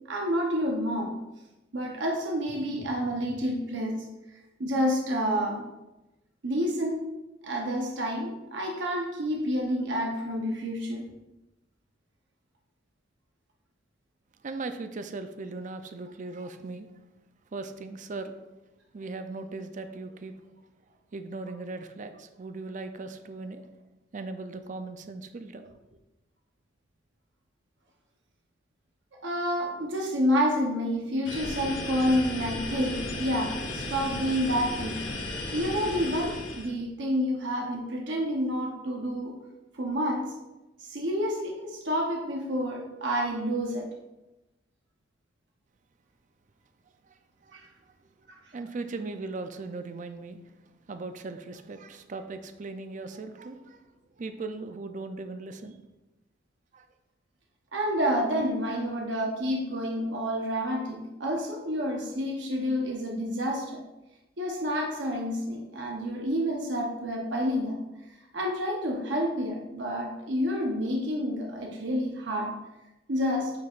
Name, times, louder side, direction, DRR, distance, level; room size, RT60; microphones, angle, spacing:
voice 1, 0.1-1.1 1.7-4.1 4.6-5.6 6.4-7.1 7.4-11.1 29.2-35.0 35.5-39.4 39.7-40.3 40.8-43.9 47.5-47.7 48.3-48.4 57.7-63.8 64.4-67.8 68.3-72.5 73.1-73.5, equal, 65° right, 0 dB, 0.9 m, -29 dB
voice 2, 14.4-16.9 17.5-18.3 18.9-20.4 21.1-23.6 24.1-25.8 47.1-47.6 47.9-48.0 48.5-50.4 50.9-53.9 54.2-55.8 56.7-56.9, right 3 dB, 40° right, 8 dB, 0.4 m, -38 dB
sound 1, 31.2-36.7, left 2 dB, 75° left, 1.4 m, -35 dB
9.3 x 4.7 x 2.5 m, 1.0 s
head